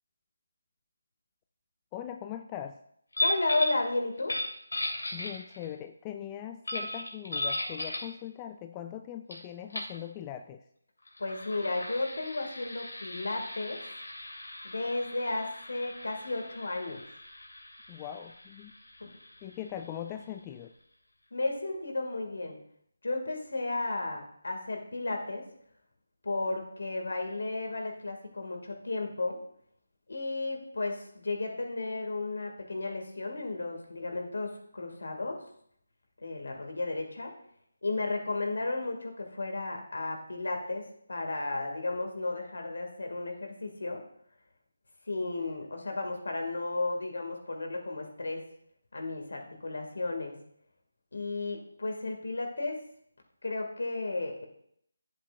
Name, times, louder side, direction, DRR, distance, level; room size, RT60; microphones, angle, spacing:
voice 1, 1.9-2.8 5.1-10.6 17.9-18.7 19.4-20.7, left 11 dB, 15° left, 6 dB, 0.3 m, -40 dB
sound 1, 3.1-3.8 4.2-5.7 6.7-8.1 9.3-9.4 9.7-10.0 11.0-20.3, left 1 dB, 90° left, 2.6 m, -37 dB
voice 2, 3.2-4.4 11.2-13.8 14.6-17.0 19.0-19.1 21.3-22.6 23.0-25.4 26.2-29.4 30.1-35.4 36.2-37.3 37.8-44.0 45.1-48.5 48.9-50.3 51.1-52.8 53.4-54.5, left 2 dB, 75° left, 2 dB, 2.4 m, -33 dB
11.0 x 7.6 x 2.6 m, 0.69 s
figure-of-eight pair, 160°, 0 cm